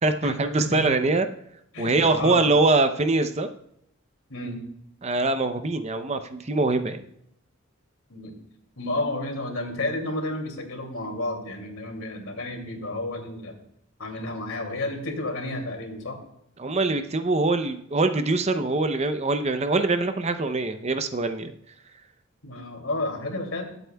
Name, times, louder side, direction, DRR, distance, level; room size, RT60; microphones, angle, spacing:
voice 1, 0.0-1.3 1.8-3.5 5.0-7.1 16.6-21.5, right 3 dB, 30° right, 9 dB, 0.6 m, -23 dB
voice 2, 0.6-0.9 1.7-2.4 4.3-4.6 8.1-8.3 8.8-13.6 14.0-16.2 22.4-23.6, left 2 dB, 75° left, 3 dB, 2.5 m, -31 dB
21.5 x 8.0 x 2.3 m, 0.75 s
head